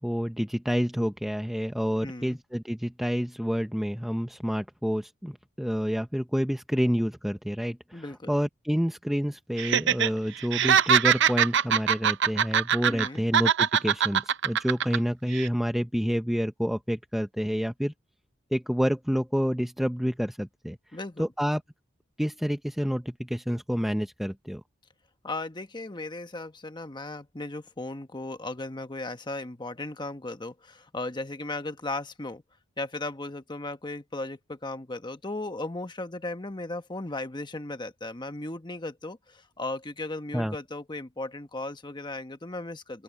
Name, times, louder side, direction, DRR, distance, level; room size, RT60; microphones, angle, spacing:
voice 1, 0.0-17.9 18.5-20.8 21.2-21.6 22.2-24.6 40.3-40.6, equal, ahead, 0.6 m, -28 dB
voice 2, 2.0-2.4 7.9-8.3 12.9-13.3 20.9-21.3 25.2-32.4 32.8-43.0, left 2 dB, 20° left, 1.1 m, -36 dB
Laughter, 9.6-10.1 10.4-13.1 13.3-15.0 15.3-15.5, right 8 dB, 60° right, 0.6 m, -22 dB
open air
head